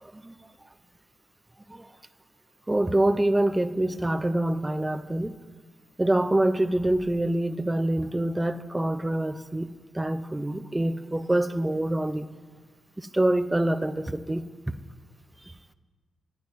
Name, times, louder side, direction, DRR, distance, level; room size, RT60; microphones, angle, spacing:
voice 1, 0.0-0.3 1.7-1.9 2.7-5.4 6.0-9.7 9.9-12.3 13.0-14.4, right 1 dB, 15° right, 13 dB, 0.6 m, -25 dB
13.0 x 7.7 x 9.1 m, 1.4 s
cardioid pair, 105°, 0 cm